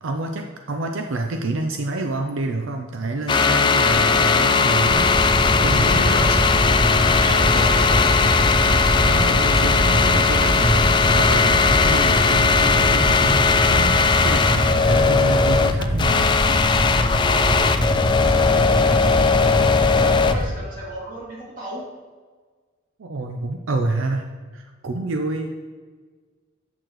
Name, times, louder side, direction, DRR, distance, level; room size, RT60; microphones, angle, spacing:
voice 1, 0.0-6.4 9.0-16.4 23.0-25.5, right 2 dB, 90° right, 4 dB, 0.5 m, -28 dB
sound 1, 3.3-20.3, left 4 dB, 25° left, 0.3 m, -18 dB
sound 2, 3.9-20.5, equal, 20° right, 2.0 m, -23 dB
voice 2, 5.6-6.2 7.2-8.1 17.4-17.8 18.3-21.9, equal, 45° right, -5 dB, 2.3 m, -34 dB
8.2 x 6.7 x 3.0 m, 1.5 s
head